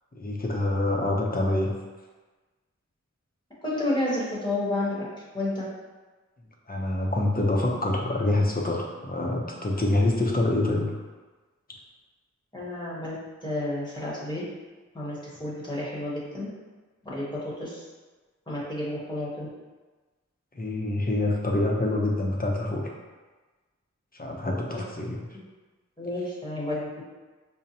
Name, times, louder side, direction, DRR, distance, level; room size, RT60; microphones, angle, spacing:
voice 1, 0.1-1.7 6.7-10.9 20.5-22.9 24.1-25.2, left 2 dB, 30° left, -1 dB, 0.7 m, -26 dB
voice 2, 3.6-5.1 5.3-5.7 12.5-14.4 14.9-16.5 17.0-17.9 18.5-19.5 24.7-24.8 26.0-27.0, left 1 dB, 15° left, -8 dB, 1.0 m, -31 dB
5.2 x 2.1 x 2.8 m, 1.3 s
wide cardioid pair, 55°, 29 cm